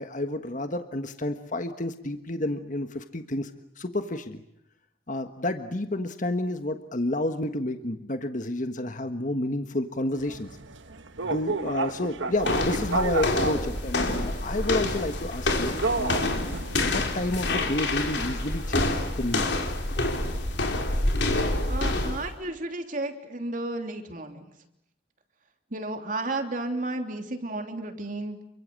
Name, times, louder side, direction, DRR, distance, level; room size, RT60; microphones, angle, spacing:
voice 1, 0.0-3.5 3.8-4.4 5.1-10.5 11.2-16.2 16.8-18.8 19.2-19.6, left 1 dB, 45° left, 7 dB, 1.5 m, -30 dB
sound 1, 10.2-19.0, right 3 dB, 85° right, 1.5 m, -34 dB
sound 2, 12.4-22.3, left 2 dB, 65° left, 3.8 m, -27 dB
voice 2, 21.7-24.5 25.7-28.4, right 2 dB, 45° right, 5 dB, 3.1 m, -33 dB
29.0 x 24.5 x 7.7 m, 0.78 s
head